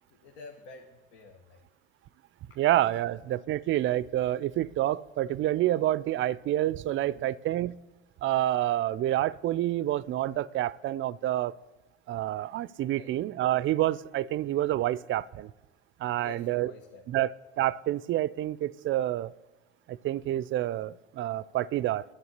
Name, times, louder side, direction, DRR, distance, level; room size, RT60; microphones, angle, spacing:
voice 1, 0.2-1.6 2.5-2.6 3.0-3.2 6.9-7.2 12.9-13.1 16.1-17.2, left 4 dB, 80° left, 3 dB, 1.1 m, -49 dB
voice 2, 2.6-7.8 8.2-11.5 12.1-15.5 16.0-16.7 17.1-19.3 19.9-22.0, right 14 dB, 45° right, 20 dB, 0.4 m, -28 dB
9.7 x 8.2 x 8.0 m, 1.1 s
hypercardioid pair, 75°, 29 cm